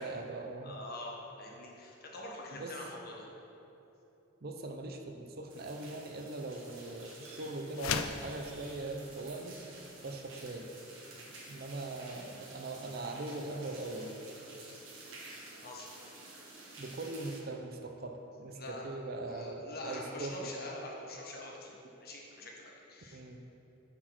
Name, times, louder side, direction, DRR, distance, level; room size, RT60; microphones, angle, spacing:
voice 1, 0.0-0.8 2.6-2.7 4.4-9.6 10.0-10.7 11.5-14.1 16.8-20.5 23.1-23.4, right 2 dB, 50° right, 4 dB, 0.6 m, -41 dB
voice 2, 0.6-3.3 15.6-15.9 18.5-18.9 19.2-21.7 22.0-23.4, left 1 dB, 50° left, -1 dB, 1.2 m, -45 dB
sound 1, 5.5-17.4, right 2 dB, 70° right, 1.5 m, -51 dB
sound 2, 7.7-8.3, left 7 dB, 85° left, 0.4 m, -33 dB
8.5 x 4.5 x 5.9 m, 3.0 s
head